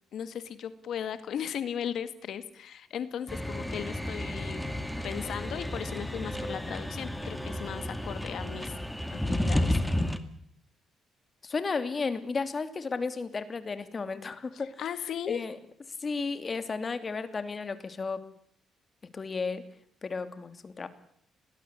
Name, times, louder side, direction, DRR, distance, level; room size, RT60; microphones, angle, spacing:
voice 1, 0.1-4.8 5.0-8.8 9.1-9.8 14.5-15.4, left 8 dB, 70° left, 12 dB, 1.9 m, -37 dB
sound 1, 3.3-10.2, left 1 dB, 5° left, 2.3 m, -32 dB
voice 2, 11.4-14.8 15.3-15.6 16.0-18.2 19.1-19.7 20.0-20.9, left 4 dB, 35° left, 11 dB, 2.8 m, -33 dB
22.0 x 19.5 x 8.3 m, 0.68 s
cardioid pair, 90°, 0 cm